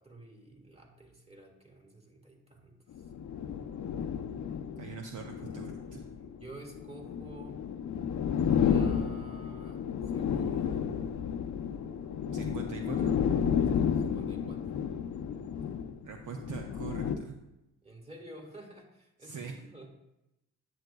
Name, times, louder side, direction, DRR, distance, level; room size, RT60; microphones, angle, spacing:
voice 1, 0.0-3.1 5.9-7.6 8.5-10.8 13.5-14.7 17.8-19.9, right 1 dB, 15° right, 0 dB, 2.1 m, -50 dB
sound 1, 2.9-17.2, left 7 dB, 50° left, 0.6 m, -32 dB
voice 2, 4.8-6.0 12.3-13.2 16.0-17.4 19.2-19.6, right 5 dB, 55° right, 3 dB, 0.7 m, -42 dB
8.9 x 8.1 x 2.3 m, 0.91 s
supercardioid pair, 65°, 36 cm